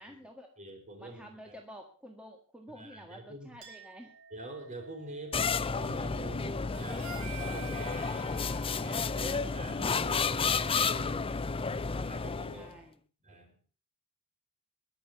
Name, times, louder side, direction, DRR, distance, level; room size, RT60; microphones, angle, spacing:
voice 1, 0.0-0.5 1.0-4.1 12.4-13.0, equal, 5° right, 2 dB, 1.7 m, -50 dB
voice 2, 0.6-1.6 2.8-3.5 4.3-7.0 7.3-8.3 8.7-12.7 13.2-13.5, right 1 dB, 35° right, 3 dB, 5.3 m, -46 dB
Chink clink, 3.6-10.7, right 3 dB, 70° right, 4.7 m, -56 dB
sound 1, 5.3-12.7, left 5 dB, 25° left, 0.6 m, -31 dB
Harmonica, 6.7-11.2, right 6 dB, 90° right, 2.1 m, -49 dB
21.5 x 7.1 x 6.8 m, 0.41 s
head